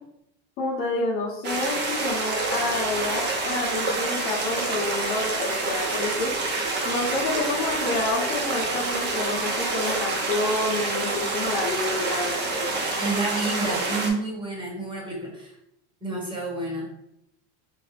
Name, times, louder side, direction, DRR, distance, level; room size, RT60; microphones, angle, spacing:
voice 1, 0.6-6.3 6.8-12.9, left 2 dB, 55° left, -6 dB, 1.1 m, -29 dB
sound 1, 1.4-14.1, right 3 dB, 30° right, 0.6 m, -27 dB
voice 2, 13.0-15.5 16.0-16.9, right 3 dB, 15° right, -3 dB, 1.2 m, -29 dB
4.6 x 2.1 x 3.3 m, 0.78 s
supercardioid pair, 140°, 36 cm